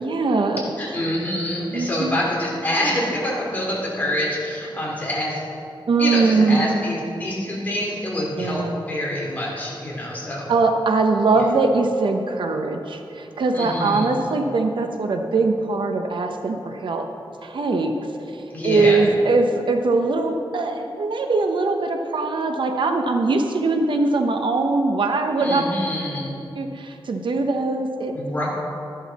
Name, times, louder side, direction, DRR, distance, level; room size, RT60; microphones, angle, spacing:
voice 1, 0.0-0.6 1.7-2.2 5.9-6.8 8.4-8.8 10.5-17.1 17.4-17.9 18.3-25.6 26.5-28.1, right 3 dB, 65° right, 5 dB, 0.8 m, -21 dB
voice 2, 0.8-5.4 6.0-10.5 13.5-14.1 18.5-19.0 25.4-26.3 28.1-28.5, left 1 dB, 20° left, -5 dB, 3.1 m, -26 dB
13.0 x 11.5 x 4.1 m, 2.8 s
wide cardioid pair, 150°, 9 cm